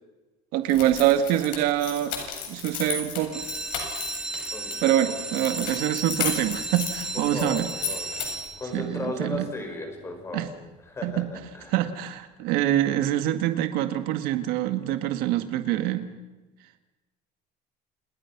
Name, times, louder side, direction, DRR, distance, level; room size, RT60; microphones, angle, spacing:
voice 1, 0.5-2.2 2.5-3.4 4.8-7.7 8.7-9.5 10.3-10.5 11.0-11.3 11.7-16.1, right 12 dB, 70° right, 8 dB, 1.9 m, -25 dB
sound 1, 0.7-4.8 5.3-8.5, left 7 dB, 60° left, 7.5 m, -34 dB
sound 2, 3.3-8.9 9.6-10.0 10.4-10.5 10.8-10.9 11.3-11.4, right 2 dB, 5° right, 2.5 m, -34 dB
voice 2, 7.1-8.1 8.6-10.5 10.8-11.8, left 2 dB, 15° left, 4 dB, 5.6 m, -35 dB
29.5 x 29.5 x 6.1 m, 1.1 s
cardioid pair, 180°, 16 cm